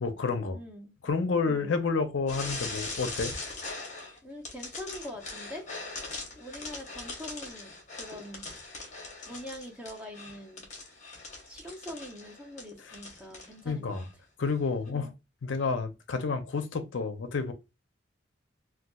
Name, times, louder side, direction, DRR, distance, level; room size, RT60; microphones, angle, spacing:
voice 1, 0.0-0.6 1.0-3.3 12.8-12.9 13.6-14.1 14.4-15.1 15.4-17.5, left 4 dB, 70° left, 0.5 m, -30 dB
voice 2, 0.5-1.0 1.4-1.8 4.2-5.7 6.4-8.4 9.3-10.7 11.5-14.0 14.9-15.1, left 1 dB, 5° right, 0.6 m, -43 dB
sound 1, 2.3-4.2 4.4-13.5 13.9-14.1 14.9-15.0, left 3 dB, 35° left, 0.9 m, -41 dB
4.0 x 2.3 x 2.2 m
head